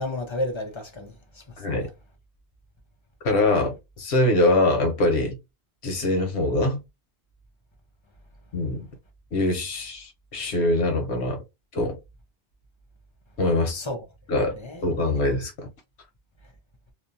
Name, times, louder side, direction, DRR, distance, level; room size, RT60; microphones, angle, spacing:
voice 1, 0.0-1.4 1.8-1.9 13.7-14.0 14.5-14.8, left 1 dB, 40° left, 0.4 m, -32 dB
voice 2, 1.6-1.9 3.2-5.4 5.8-6.8 8.5-8.9 9.3-11.4 11.7-12.0 13.4-13.8 14.3-14.5 14.8-15.7, left 2 dB, 90° left, 1.1 m, -23 dB
2.7 x 2.1 x 2.5 m
omnidirectional pair, 1.1 m